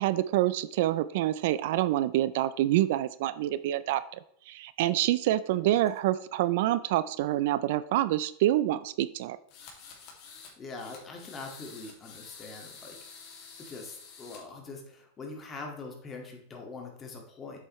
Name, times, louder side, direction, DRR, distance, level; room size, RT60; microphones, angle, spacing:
voice 1, 0.0-4.0 4.5-9.4, right 14 dB, 65° right, 16 dB, 0.4 m, -27 dB
sound 1, 9.5-10.5 10.8-14.4, left 5 dB, 45° left, 2.3 m, -49 dB
voice 2, 10.2-13.0 13.6-17.6, left 3 dB, 20° left, 2 dB, 1.9 m, -43 dB
8.3 x 7.4 x 3.1 m, 0.69 s
supercardioid pair, 140°, 0 cm